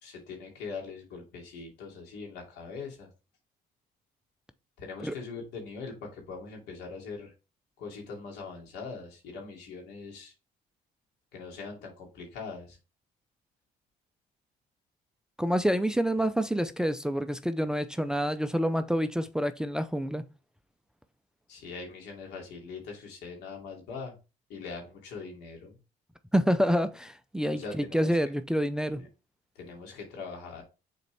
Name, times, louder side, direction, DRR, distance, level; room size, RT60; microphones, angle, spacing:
voice 1, 0.0-3.1 4.8-7.3 7.8-10.3 11.3-12.8 21.5-24.1 24.5-25.7 27.5-28.2 29.0-29.1 29.6-30.6, left 4 dB, 85° left, 2.6 m, -42 dB
voice 2, 15.4-20.2 26.3-29.0, equal, 5° right, 0.5 m, -27 dB
6.6 x 4.2 x 3.4 m
cardioid pair, 110°, 17 cm